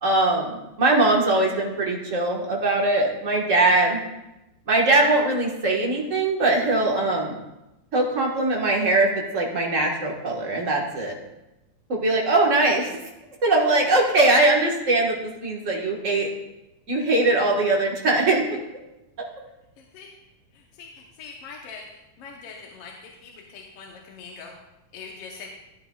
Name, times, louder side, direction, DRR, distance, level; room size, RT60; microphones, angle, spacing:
voice 1, 0.0-4.0 4.7-7.4 7.9-11.1 11.9-13.0 13.4-16.3 16.9-18.6, right 2 dB, 40° right, -1 dB, 1.1 m, -21 dB
voice 2, 19.8-20.1 20.5-21.9 22.2-24.5 24.9-25.5, left 5 dB, 65° left, -1 dB, 1.7 m, -42 dB
14.0 x 9.8 x 2.3 m, 0.95 s
omnidirectional pair, 3.4 m